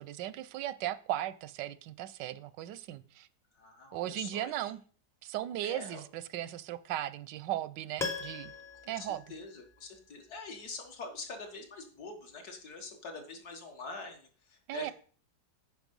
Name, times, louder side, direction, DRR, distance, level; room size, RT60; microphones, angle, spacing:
voice 1, 0.0-3.3 3.9-4.8 5.2-8.5 8.8-9.2 14.7-14.9, right 13 dB, 85° right, 17 dB, 1.2 m, -37 dB
voice 2, 3.6-4.5 5.6-6.0 8.8-14.9, left 3 dB, 60° left, 4 dB, 2.0 m, -45 dB
Piano, 8.0-10.1 10.4-10.5, left 4 dB, ahead, 0.7 m, -40 dB
9.2 x 5.3 x 5.3 m, 0.43 s
omnidirectional pair, 1.9 m